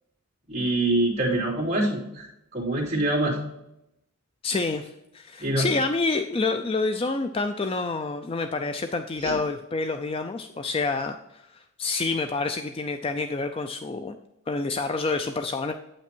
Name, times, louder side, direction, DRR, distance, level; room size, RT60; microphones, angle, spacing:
voice 1, 0.5-2.3 2.5-3.4 5.4-5.7 9.2-9.4, right 1 dB, 30° right, -6 dB, 2.7 m, -25 dB
voice 2, 4.4-11.2 11.8-14.2 14.5-15.7, left 3 dB, 25° left, 7 dB, 0.3 m, -28 dB
8.4 x 5.9 x 4.4 m, 0.84 s
head